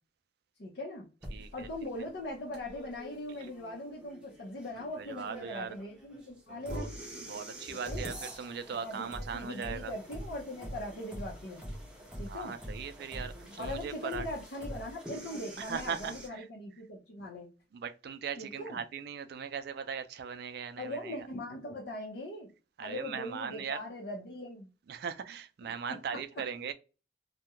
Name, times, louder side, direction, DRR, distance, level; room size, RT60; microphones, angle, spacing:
voice 1, 0.6-1.1 1.5-7.0 7.7-8.1 8.7-9.1 9.3-11.7 12.2-12.5 13.6-17.5 18.4-18.8 20.8-22.5 22.8-24.7 25.6-25.7 26.1-26.2, left 1 dB, 75° left, 0.6 m, -40 dB
sound 1, 1.2-16.3, right 1 dB, 5° right, 0.6 m, -44 dB
voice 2, 1.3-1.7 5.0-5.8 6.5-6.9 7.2-9.9 12.3-14.3 15.6-16.4 17.7-21.2 22.8-23.8 24.9-26.7, right 6 dB, 65° right, 0.4 m, -39 dB
2.3 x 2.2 x 2.8 m
head